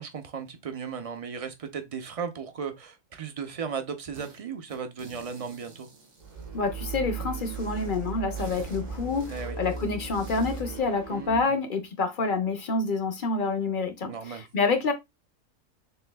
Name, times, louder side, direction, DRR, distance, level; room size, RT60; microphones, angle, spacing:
voice 1, 0.0-5.9 9.3-9.6 11.1-11.6 14.0-14.4, right 6 dB, 40° right, 0.5 m, -36 dB
sound 1, 4.1-4.4 4.7-6.8 7.3-10.7, right 3 dB, 90° right, 1.8 m, -50 dB
sound 2, 6.2-11.4, right 4 dB, 70° right, 1.7 m, -37 dB
voice 2, 6.5-14.9, left 4 dB, 50° left, 0.6 m, -28 dB
6.6 x 2.6 x 2.2 m
omnidirectional pair, 1.4 m